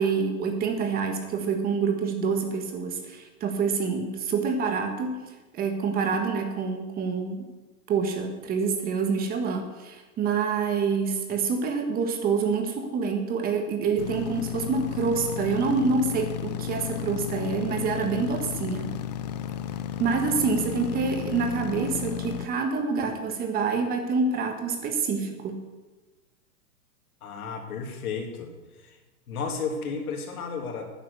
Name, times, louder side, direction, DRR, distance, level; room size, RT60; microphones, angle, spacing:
voice 1, 0.0-5.2 5.5-7.4 7.9-18.9 20.0-25.6, right 5 dB, 20° right, 5 dB, 1.6 m, -27 dB
sound 1, 14.0-22.5, left 10 dB, 30° left, 0.4 m, -33 dB
voice 2, 27.2-29.0 29.3-30.9, left 5 dB, 70° left, 3 dB, 3.0 m, -33 dB
10.5 x 10.0 x 6.6 m, 1.2 s
hypercardioid pair, 150°, 45 cm